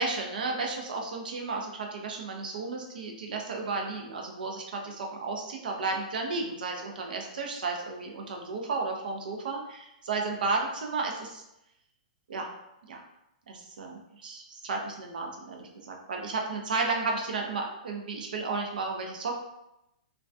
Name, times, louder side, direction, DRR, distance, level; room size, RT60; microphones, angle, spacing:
voice 1, 0.0-11.4 12.3-12.5 12.9-13.0 13.5-19.3, right 3 dB, 90° right, 2 dB, 0.5 m, -33 dB
2.3 x 2.2 x 2.5 m, 0.87 s
hypercardioid pair, 170°, 5 cm